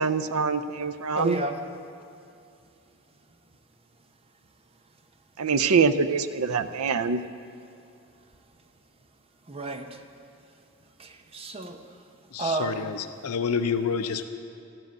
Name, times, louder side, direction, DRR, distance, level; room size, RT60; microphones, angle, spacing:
voice 1, 0.0-1.4 5.4-7.2, right 5 dB, 80° right, 10 dB, 0.6 m, -24 dB
voice 2, 1.1-1.7 9.5-10.0 11.0-12.0 12.4-12.9, right 2 dB, 25° right, 5 dB, 0.8 m, -32 dB
voice 3, 12.3-14.2, left 6 dB, 85° left, 9 dB, 0.6 m, -28 dB
14.0 x 7.7 x 9.4 m, 2.5 s
head